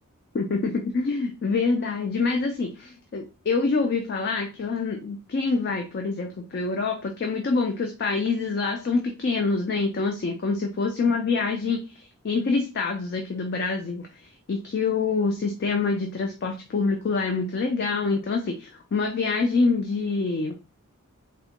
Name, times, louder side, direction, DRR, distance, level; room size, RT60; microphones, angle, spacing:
voice 1, 0.3-14.1 14.5-20.5, left 4 dB, 45° left, 4 dB, 0.3 m, -26 dB
3.4 x 2.1 x 2.9 m, 0.31 s
head